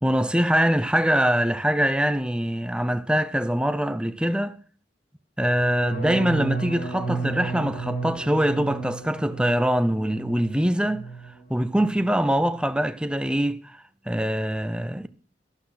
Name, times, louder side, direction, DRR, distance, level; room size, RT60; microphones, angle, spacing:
voice 1, 0.0-4.6 5.4-11.1 11.5-15.1, equal, 5° right, 0.7 m, -23 dB
sound 1, 5.4-11.3 11.6-12.1 12.4-12.8, right 4 dB, 50° left, 3.4 m, -33 dB
12.0 x 12.0 x 5.8 m
head